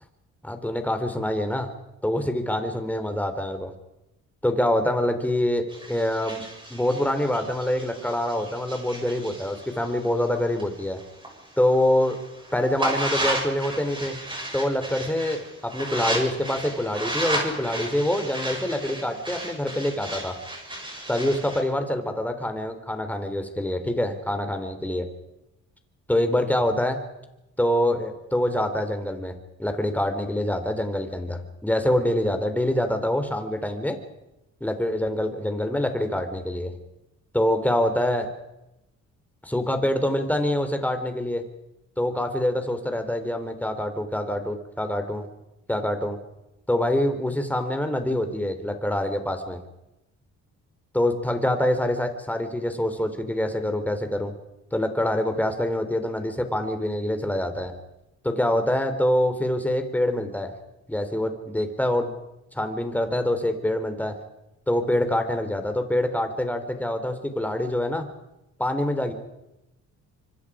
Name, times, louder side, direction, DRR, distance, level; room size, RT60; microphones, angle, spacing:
voice 1, 0.4-1.7 2.0-3.7 4.4-6.4 6.7-11.0 11.6-12.2 12.5-14.2 14.5-20.3 21.1-25.1 26.1-27.0 27.6-29.3 29.6-34.0 34.6-36.7 37.3-38.3 39.4-41.4 42.0-45.2 45.7-46.2 46.7-49.6 50.9-54.3 54.7-57.7 58.2-60.5 60.9-62.1 62.5-64.2 64.7-68.1 68.6-69.1, left 1 dB, 5° left, 7 dB, 3.6 m, -25 dB
sound 1, 5.7-11.3 11.7-21.6, right 1 dB, 15° right, 7.3 m, -33 dB
25.0 x 25.0 x 5.0 m, 0.92 s
cardioid pair, 90°, 30 cm